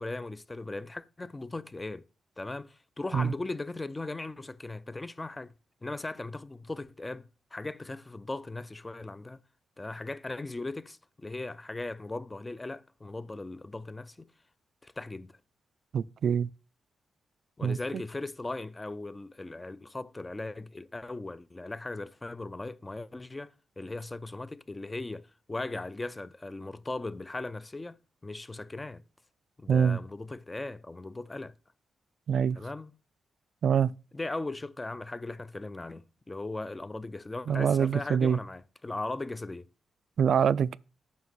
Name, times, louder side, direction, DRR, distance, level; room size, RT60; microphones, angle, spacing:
voice 1, 0.0-2.0 2.4-5.5 5.8-9.4 9.8-14.3 14.8-15.3 17.6-28.0 28.2-29.0 29.6-31.5 32.6-32.9 34.1-39.7, left 2 dB, 15° left, 0.4 m, -38 dB
voice 2, 15.9-16.5 17.6-18.0 29.7-30.0 32.3-32.6 33.6-33.9 37.5-38.4 40.2-40.8, right 7 dB, 65° right, 0.3 m, -25 dB
9.4 x 6.0 x 4.0 m
cardioid pair, 115°, 0 cm